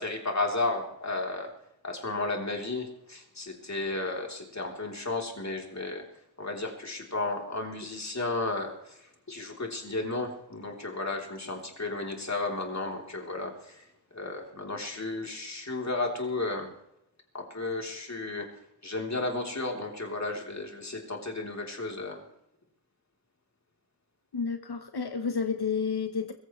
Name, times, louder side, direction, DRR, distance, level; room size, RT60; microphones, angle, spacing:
voice 1, 0.0-1.5 1.8-6.0 6.4-13.9 14.1-16.7 17.3-18.5 18.8-22.2, left 2 dB, 45° left, 1 dB, 3.5 m, -33 dB
voice 2, 24.3-26.3, left 5 dB, 90° left, 6 dB, 1.1 m, -30 dB
22.0 x 15.5 x 3.2 m, 0.80 s
wide cardioid pair, 75°, 38 cm